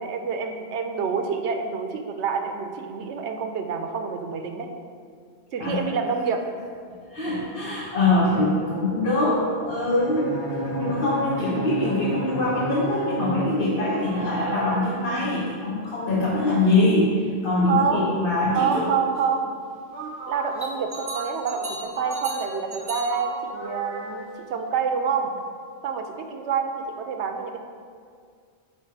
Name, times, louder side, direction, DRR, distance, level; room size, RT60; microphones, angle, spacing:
voice 1, 0.0-4.7 5.5-6.4 17.7-19.5 20.3-25.3 25.8-27.6, right 6 dB, 85° right, 5 dB, 0.9 m, -27 dB
voice 2, 7.1-18.9, left 2 dB, 55° left, -7 dB, 1.3 m, -23 dB
Bowed string instrument, 10.0-14.1, equal, 35° left, 1.0 m, -31 dB
sound 1, 10.7-11.6 12.7-15.3 19.9-24.4, right 2 dB, 70° right, 1.2 m, -37 dB
sound 2, 15.8-15.9 16.3-16.8 18.4-18.5 19.0-19.3 20.4-20.8, equal, 10° left, 0.9 m, -45 dB
9.0 x 3.3 x 4.6 m, 2.1 s
omnidirectional pair, 1.1 m